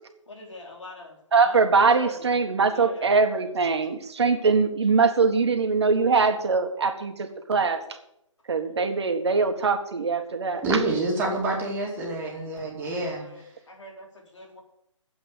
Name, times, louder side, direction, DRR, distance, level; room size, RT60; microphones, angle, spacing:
voice 1, 0.3-1.6 2.0-2.4 2.7-3.1 12.3-12.5 12.7-14.6, left 2 dB, 65° left, 1 dB, 4.1 m, -44 dB
voice 2, 1.3-7.8 8.5-10.8, right 4 dB, 55° right, 6 dB, 1.7 m, -22 dB
voice 3, 10.6-13.3, right 2 dB, 10° right, -2 dB, 2.7 m, -27 dB
9.6 x 7.7 x 9.4 m, 0.77 s
figure-of-eight pair, 145°, 17 cm